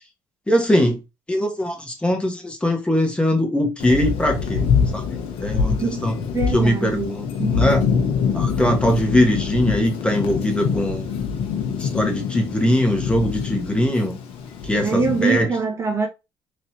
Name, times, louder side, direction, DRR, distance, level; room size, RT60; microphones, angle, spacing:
voice 1, 0.5-1.0 1.3-4.6 4.9-6.1 6.5-7.8 8.3-11.1 11.8-14.2 14.6-15.5, left 1 dB, 10° left, 1.6 m, -21 dB
Thunder, 3.8-15.4, left 6 dB, 75° left, 1.1 m, -25 dB
voice 2, 5.7-6.0 6.3-7.6 14.8-16.1, right 4 dB, 30° right, 0.9 m, -24 dB
3.9 x 3.2 x 2.8 m
supercardioid pair, 80°, 9 cm